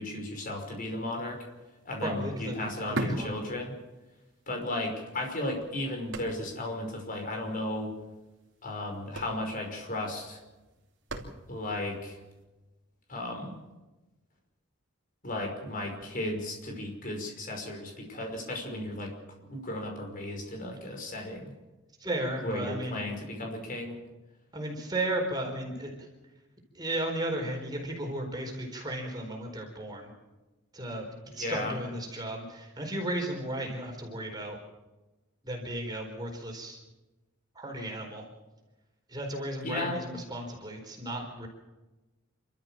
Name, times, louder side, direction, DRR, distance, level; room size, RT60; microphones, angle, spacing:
voice 1, 0.0-1.4 1.9-3.7 4.5-7.9 8.6-10.4 11.5-12.2 13.1-13.6 15.2-19.1 19.5-21.5 22.4-24.0 31.4-31.8 39.6-40.0, left 1 dB, 40° left, 2 dB, 5.5 m, -35 dB
sound 1, 1.2-1.3 1.6-4.2 4.5-4.6 5.3-6.8 7.0-7.1 7.4-7.6 8.5-8.7 8.9-11.8 12.4-12.5, right 1 dB, 60° right, 3.1 m, -38 dB
voice 2, 2.0-3.4 22.0-23.0 24.5-25.9 26.7-30.1 30.7-34.6 35.4-36.8 37.5-38.2 39.1-41.5, right 1 dB, 20° right, 1 dB, 4.4 m, -34 dB
28.0 x 13.5 x 7.5 m, 1.1 s
head